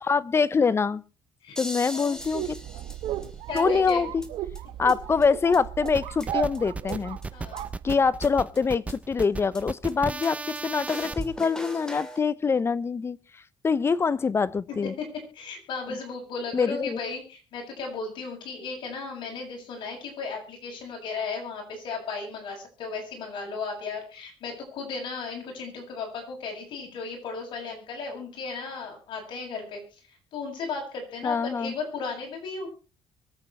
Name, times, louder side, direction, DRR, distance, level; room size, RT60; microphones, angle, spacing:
voice 1, 0.0-1.0 1.6-2.6 3.5-4.2 4.8-7.2 7.8-13.2 13.6-14.9 16.5-17.0 31.2-31.7, left 5 dB, 30° left, 0.7 m, -24 dB
sound 1, 1.6-3.6 3.9-4.0 4.2-4.3 4.6-4.7 4.9-5.0 5.2-5.3 5.5-5.6 5.9-6.6 6.9-7.0 7.2-7.3 7.6-7.7 7.9-8.0 8.2-8.3 8.6-8.7 8.9-9.0 9.2-9.3 9.5-9.6 9.9-10.0 10.2-10.3 10.6-10.7 10.9-12.2, left 1 dB, 5° left, 2.4 m, -39 dB
voice 2, 1.9-2.2 3.5-4.1 7.3-7.7 14.7-15.0 15.3-30.0 30.3-32.7, left 4 dB, 65° left, 7.8 m, -35 dB
sound 2, 2.2-8.4, right 12 dB, 75° right, 1.2 m, -35 dB
sound 3, 5.9-11.1, right 3 dB, 15° right, 0.7 m, -35 dB
24.0 x 8.5 x 4.4 m
cardioid pair, 115°, 9 cm